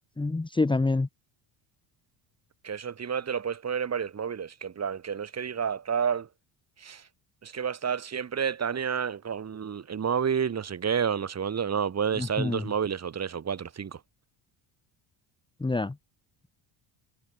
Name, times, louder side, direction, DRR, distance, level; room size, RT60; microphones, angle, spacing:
voice 1, 0.2-1.1 12.1-12.7 15.6-16.0, left 3 dB, 10° left, 1.7 m, -27 dB
voice 2, 2.6-6.3 6.8-7.0 7.4-14.0, right 7 dB, 30° right, 6.9 m, -30 dB
cardioid pair, 145°, 50 cm